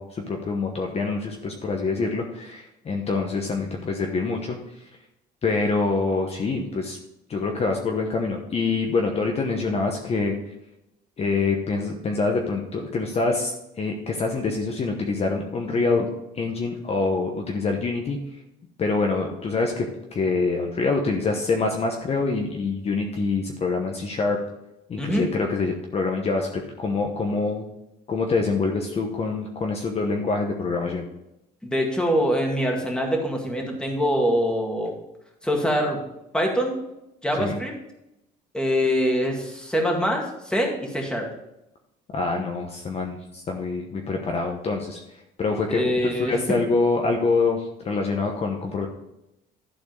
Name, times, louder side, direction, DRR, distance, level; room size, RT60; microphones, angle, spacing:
voice 1, 0.0-4.9 5.4-7.0 7.3-10.4 11.2-16.1 16.3-18.2 18.8-24.4 24.9-27.6 28.1-31.1 37.4-37.6 42.1-45.0 45.4-48.9, left 3 dB, 35° left, 2 dB, 1.0 m, -25 dB
voice 2, 25.0-25.3 31.6-34.9 35.4-36.0 36.3-36.7 37.2-37.7 38.5-41.3 45.7-46.4, equal, 5° left, 1 dB, 2.0 m, -24 dB
11.5 x 4.3 x 5.3 m, 0.88 s
cardioid pair, 110°, 17 cm